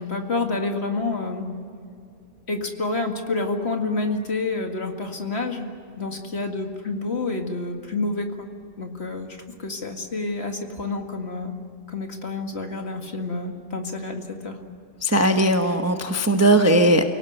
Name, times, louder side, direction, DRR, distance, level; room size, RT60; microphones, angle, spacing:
voice 1, 0.0-1.5 2.5-5.7 6.0-8.5 8.8-11.5 11.9-14.6, left 3 dB, 40° left, 3 dB, 2.2 m, -28 dB
voice 2, 15.0-17.0, right 1 dB, 10° right, 5 dB, 0.9 m, -18 dB
29.5 x 18.5 x 8.1 m, 2.4 s
omnidirectional pair, 1.8 m